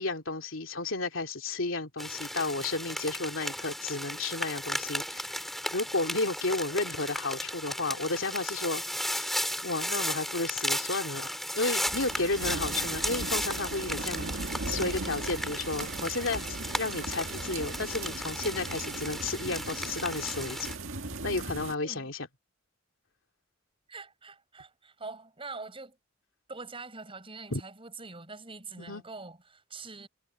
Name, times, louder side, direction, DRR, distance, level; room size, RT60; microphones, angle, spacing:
voice 1, 0.0-5.4 5.7-9.3 9.6-14.3 14.6-20.8 21.2-22.3 27.5-27.6 28.8-29.0, left 3 dB, 80° left, 2.9 m, -32 dB
sound 1, 2.0-20.7, equal, ahead, 4.7 m, -35 dB
sound 2, 11.9-21.7, right 3 dB, 85° right, 1.9 m, -38 dB
voice 2, 23.9-26.0 26.5-30.1, right 3 dB, 30° right, 7.5 m, -44 dB
head